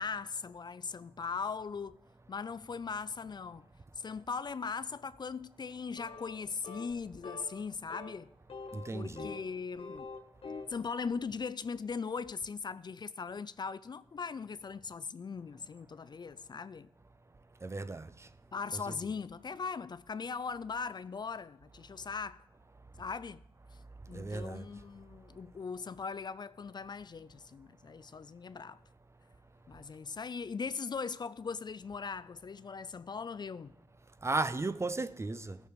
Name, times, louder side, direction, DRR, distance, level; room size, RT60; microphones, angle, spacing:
voice 1, 0.0-2.0 2.3-3.7 4.0-8.3 8.9-10.1 10.7-16.9 18.5-22.5 23.0-23.4 24.1-28.8 29.7-33.7, left 5 dB, 45° left, 0.4 m, -39 dB
sound 1, 6.0-6.4 6.6-6.9 7.2-7.6 7.9-8.1 8.5-9.5 9.8-10.7, left 3 dB, 65° left, 1.4 m, -44 dB
voice 2, 8.7-9.3 17.6-18.3 24.1-24.7 34.2-35.6, right 3 dB, 30° right, 0.6 m, -35 dB
16.0 x 6.7 x 4.7 m
cardioid pair, 60°, 10 cm